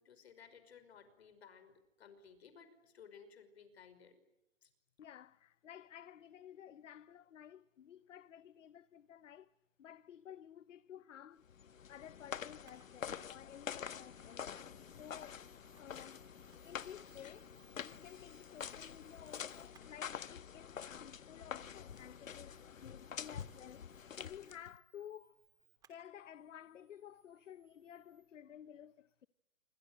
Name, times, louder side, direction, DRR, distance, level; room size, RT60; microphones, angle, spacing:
voice 1, 0.0-4.2 4.6-4.7, left 6 dB, 55° left, 5.4 m, -58 dB
voice 2, 5.0-9.5 9.8-11.5 11.9-14.5 15.0-15.4 15.8-16.3 16.6-17.5 17.8-25.4 25.9-29.3, left 10 dB, 70° left, 0.9 m, -54 dB
sound 1, 11.5-24.8, left 8 dB, 90° left, 1.4 m, -47 dB
Camera, 12.6-28.3, right 7 dB, 10° right, 3.3 m, -71 dB
28.0 x 25.0 x 7.8 m
hypercardioid pair, 170°, 38 cm